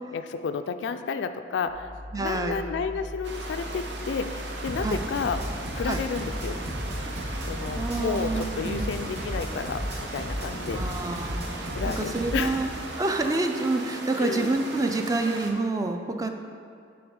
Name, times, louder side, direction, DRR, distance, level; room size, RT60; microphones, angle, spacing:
voice 1, 0.1-1.9 2.2-5.4 5.7-6.6 7.4-10.9 11.7-12.6 13.2-13.4 14.2-14.5, left 5 dB, 75° left, 9 dB, 0.3 m, -31 dB
sound 1, 1.7-8.5, left 1 dB, 55° right, 1.6 m, -39 dB
voice 2, 2.1-2.6 4.8-5.0 5.8-6.0 7.8-8.9 10.7-12.7 13.0-16.3, right 2 dB, 20° right, 5 dB, 0.4 m, -28 dB
sound 2, 3.2-15.5, right 2 dB, 75° right, 0.8 m, -38 dB
sound 3, 4.7-12.7, equal, 40° right, 1.2 m, -34 dB
7.8 x 3.5 x 5.2 m, 2.3 s
head